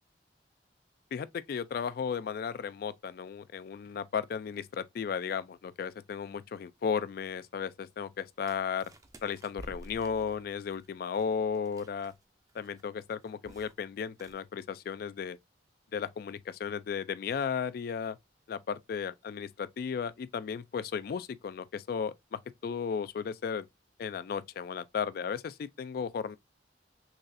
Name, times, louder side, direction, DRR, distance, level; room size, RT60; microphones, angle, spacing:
voice 1, 1.1-8.8 9.2-12.1 12.5-15.4 15.9-18.2 18.5-23.7 24.0-26.4, left 6 dB, 55° left, 0.3 m, -35 dB
sound 1, 8.4-12.2 12.5-12.8 13.1-13.8 14.1-14.3, right 1 dB, 20° right, 0.5 m, -51 dB
4.0 x 3.1 x 2.5 m
head